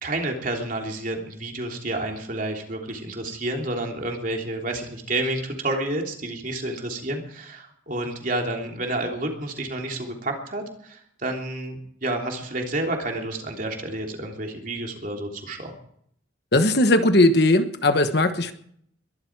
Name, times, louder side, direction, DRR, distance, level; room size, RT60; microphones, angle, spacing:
voice 1, 0.0-15.7, right 2 dB, 40° right, 2 dB, 3.3 m, -30 dB
voice 2, 16.5-18.5, left 2 dB, 55° left, 9 dB, 1.2 m, -18 dB
22.0 x 12.5 x 4.7 m, 0.66 s
head